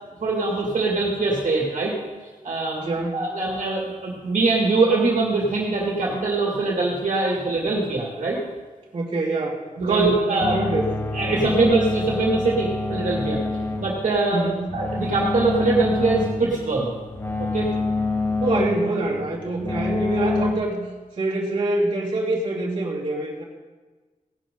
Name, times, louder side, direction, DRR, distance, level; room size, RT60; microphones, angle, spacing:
voice 1, 0.2-1.9 2.4-2.9 3.1-8.4 9.8-10.6 11.1-13.4 13.8-14.4 14.7-16.9 17.4-17.7, right 3 dB, 60° right, -3 dB, 2.3 m, -22 dB
voice 2, 2.8-3.2 8.9-10.9 11.3-11.6 14.3-14.7 18.4-20.8 21.2-23.4, right 2 dB, 35° right, -6 dB, 2.7 m, -25 dB
sound 1, 10.4-20.5, left 3 dB, 15° left, 1.0 m, -27 dB
17.0 x 11.0 x 3.9 m, 1.3 s
wide cardioid pair, 175°, 15 cm